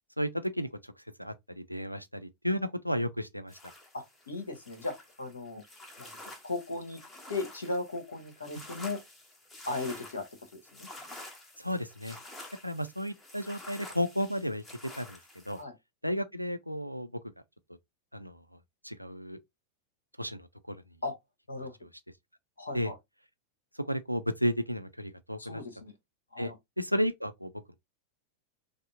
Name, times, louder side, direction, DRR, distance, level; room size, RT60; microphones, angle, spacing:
voice 1, 0.2-0.7 1.2-3.6 8.5-8.6 11.6-12.2 12.6-15.2 15.5-15.6 16.0-17.1 18.1-18.4 18.8-19.4 20.2-20.8 22.7-22.9 23.8-25.6 26.4-26.5 26.8-27.8, equal, 90° right, 0.4 m, -33 dB
sound 1, 3.5-15.6, left 1 dB, 15° left, 0.9 m, -49 dB
voice 2, 3.9-5.6 6.0-6.2 6.4-7.0 7.3-9.0 9.7-10.2 10.5-10.9 15.6-15.7 21.0-21.1 21.5-21.8 22.6-23.0 25.4-25.9 26.3-26.5, left 3 dB, 75° left, 1.1 m, -37 dB
5.2 x 2.1 x 2.5 m
figure-of-eight pair, 90°, 0 cm